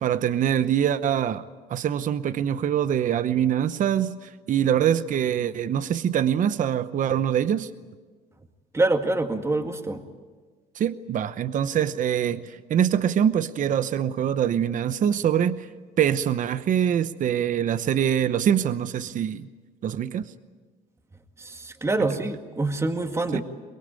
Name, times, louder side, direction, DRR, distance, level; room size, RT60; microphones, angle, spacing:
voice 1, 0.0-7.7 10.7-15.7 16.0-19.5 19.8-20.3 23.3-23.4, right 9 dB, 50° right, 13 dB, 0.9 m, -24 dB
voice 2, 8.7-10.0 21.4-23.4, right 2 dB, 15° right, 6 dB, 1.9 m, -25 dB
23.5 x 21.5 x 9.0 m, 1.4 s
cardioid pair, 110°, 17 cm